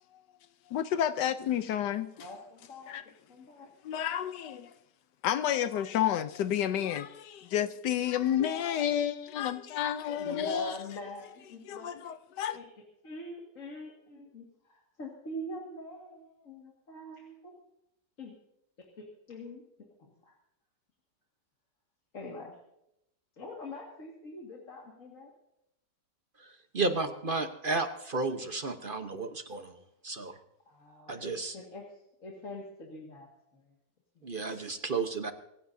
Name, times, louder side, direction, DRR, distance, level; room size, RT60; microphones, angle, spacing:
voice 1, 0.7-2.1 2.9-3.0 3.8-4.7 5.2-10.8 11.7-12.6, left 10 dB, 80° left, 1.3 m, -30 dB
voice 2, 2.1-2.9 3.3-3.7 10.2-11.9 12.5-12.7 13.0-17.5 18.2-18.3 18.8-19.6 20.2-20.4 22.1-22.6 23.4-25.3 30.7-33.6 34.2-34.3, left 1 dB, 50° left, 2.4 m, -44 dB
voice 3, 26.7-29.7 30.0-30.3 31.1-31.5 34.2-35.3, right 3 dB, 40° right, 0.9 m, -32 dB
25.5 x 15.5 x 2.7 m
omnidirectional pair, 1.8 m